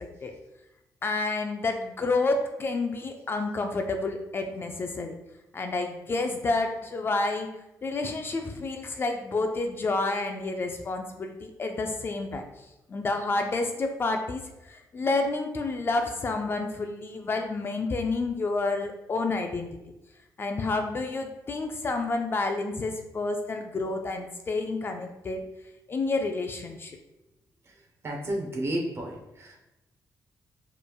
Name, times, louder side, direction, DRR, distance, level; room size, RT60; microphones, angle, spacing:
voice 1, 1.0-5.2 5.5-7.5 7.8-12.4 12.9-19.7 20.4-25.4 25.9-27.0, left 3 dB, 35° left, 4 dB, 0.4 m, -29 dB
voice 2, 28.0-29.6, right 1 dB, 40° right, 0 dB, 0.8 m, -32 dB
5.2 x 3.1 x 2.3 m, 0.93 s
wide cardioid pair, 145°, 7 cm